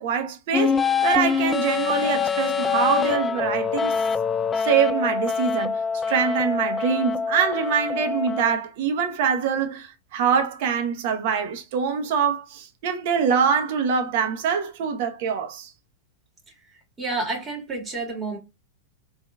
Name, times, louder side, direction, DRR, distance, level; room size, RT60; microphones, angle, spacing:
voice 1, 0.0-4.0 4.6-5.7 6.1-15.7, right 7 dB, 60° right, 1.0 m, -24 dB
sound 1, 0.5-8.5, left 6 dB, 20° left, 0.3 m, -25 dB
voice 2, 16.5-18.4, right 3 dB, 25° right, 2.5 m, -30 dB
4.1 x 3.8 x 2.3 m
hypercardioid pair, 110°, 0 cm